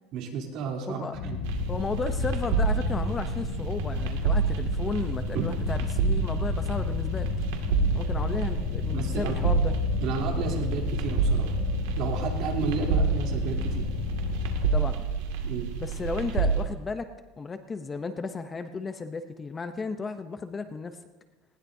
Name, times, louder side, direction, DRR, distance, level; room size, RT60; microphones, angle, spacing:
voice 1, 0.1-1.4 5.3-5.4 8.9-9.6 10.0-11.6 11.9-13.9 15.4-15.7, right 6 dB, 55° right, 0 dB, 3.2 m, -32 dB
sound 1, 1.1-14.7, left 7 dB, 50° left, 6.0 m, -32 dB
sound 2, 1.4-16.6, right 6 dB, 80° right, 2.1 m, -29 dB
voice 2, 1.7-7.3 7.9-9.7 14.7-15.1 15.8-17.1 17.4-20.9, left 4 dB, 20° left, 9 dB, 0.7 m, -34 dB
19.5 x 19.0 x 2.7 m, 1.2 s
supercardioid pair, 145°, 0 cm